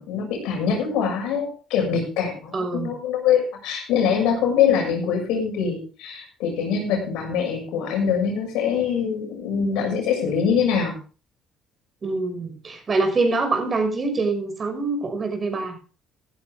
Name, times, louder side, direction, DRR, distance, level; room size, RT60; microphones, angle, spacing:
voice 1, 0.0-10.9, left 7 dB, 80° left, 2 dB, 7.0 m, -23 dB
voice 2, 2.5-2.9 12.0-15.8, right 3 dB, 35° right, 6 dB, 5.9 m, -25 dB
16.0 x 12.5 x 3.6 m, 0.36 s
supercardioid pair, 75°, 0 cm